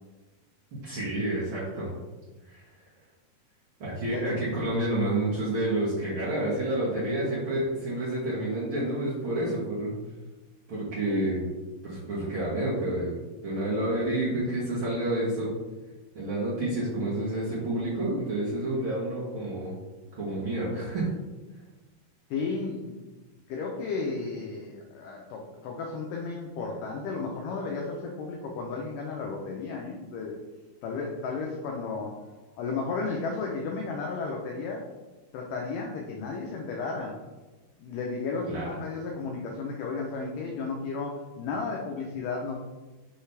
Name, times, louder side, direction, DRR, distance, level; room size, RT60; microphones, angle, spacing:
voice 1, 0.8-1.9 2.5-2.6 3.8-10.0 10.7-11.4 11.8-15.5 16.1-19.7 20.1-21.1 38.5-38.7, right 1 dB, 85° right, -8 dB, 1.1 m, -29 dB
voice 2, 22.3-23.0 23.5-30.4 30.8-32.1 32.6-34.8 35.3-37.2 37.8-42.6, left 4 dB, 85° left, 0 dB, 1.9 m, -33 dB
6.3 x 5.7 x 3.3 m, 1.2 s
omnidirectional pair, 4.6 m